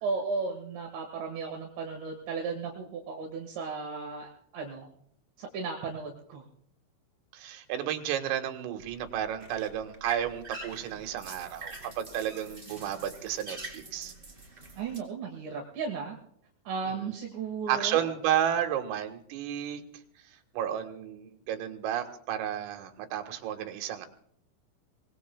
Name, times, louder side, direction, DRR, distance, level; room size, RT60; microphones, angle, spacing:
voice 1, 0.0-4.9 5.4-6.4 14.8-16.2 16.7-18.1, right 5 dB, 70° right, 2 dB, 3.9 m, -35 dB
voice 2, 7.3-14.1 16.9-17.0 17.7-19.8 20.5-24.1, right 10 dB, 90° right, 6 dB, 4.1 m, -32 dB
sound 1, 8.8-15.0, right 2 dB, 15° right, 2.4 m, -44 dB
24.0 x 20.5 x 2.3 m, 0.66 s
omnidirectional pair, 5.7 m